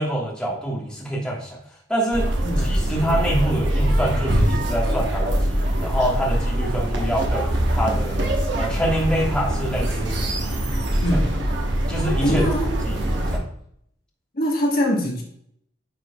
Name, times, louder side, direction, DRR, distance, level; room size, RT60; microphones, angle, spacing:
voice 1, 0.0-1.6 1.9-2.3 2.6-10.1 10.9-11.2 11.9-12.4 12.8-13.4, right 1 dB, 5° left, -4 dB, 1.4 m, -26 dB
sound 1, 2.1-13.4, right 1 dB, 60° right, 1.1 m, -23 dB
voice 2, 2.4-2.8 11.0-11.3 12.2-12.7 14.3-15.2, equal, 45° left, -1 dB, 1.2 m, -22 dB
9.8 x 4.5 x 2.3 m, 0.68 s
head